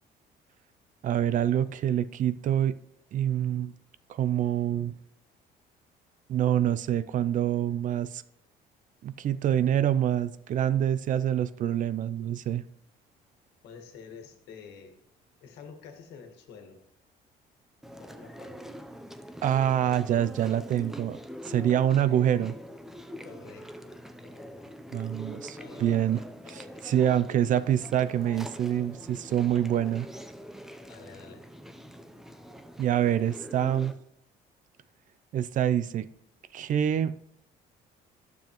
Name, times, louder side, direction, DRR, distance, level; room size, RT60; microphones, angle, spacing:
voice 1, 1.0-2.8 3.1-3.7 4.1-4.9 6.3-8.2 9.0-12.6 19.4-21.2 21.4-22.6 24.9-26.2 26.8-30.1 32.8-33.9 35.3-36.1 36.5-37.1, right 10 dB, 50° right, 15 dB, 0.4 m, -26 dB
voice 2, 13.6-15.0 15.4-16.8 18.0-18.7 23.2-24.7 25.3-26.9 30.8-31.5, left 6 dB, 80° left, 5 dB, 1.5 m, -49 dB
Chewing mastication, 17.8-33.9, equal, ahead, 0.6 m, -44 dB
11.5 x 7.0 x 3.0 m, 0.75 s
cardioid pair, 110°, 17 cm